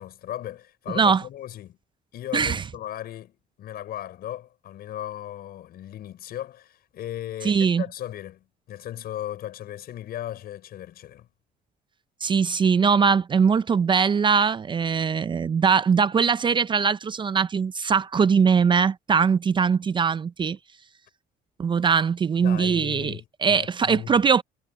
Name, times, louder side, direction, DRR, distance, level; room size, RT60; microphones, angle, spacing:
voice 1, 0.0-1.8 2.1-11.3 22.4-24.2, left 12 dB, 65° left, 6.3 m, -37 dB
voice 2, 7.4-7.8 12.2-20.6 21.6-23.2 23.4-24.4, right 6 dB, 30° right, 0.4 m, -21 dB
cardioid pair, 110°, 17 cm